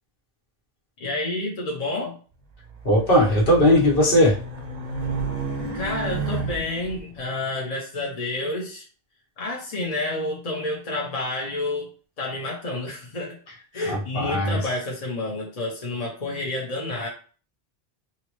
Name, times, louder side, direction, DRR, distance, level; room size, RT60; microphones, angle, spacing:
voice 1, 1.0-2.2 5.7-8.8 9.4-11.9 12.2-13.4 13.7-17.1, left 2 dB, 40° left, -2 dB, 0.8 m, -29 dB
Race car auto racing, 2.6-7.0, right 4 dB, 50° right, 0.7 m, -31 dB
voice 2, 2.8-4.3 13.9-14.6, left 1 dB, 65° left, -3 dB, 1.3 m, -18 dB
3.8 x 2.0 x 3.1 m, 0.39 s
omnidirectional pair, 1.0 m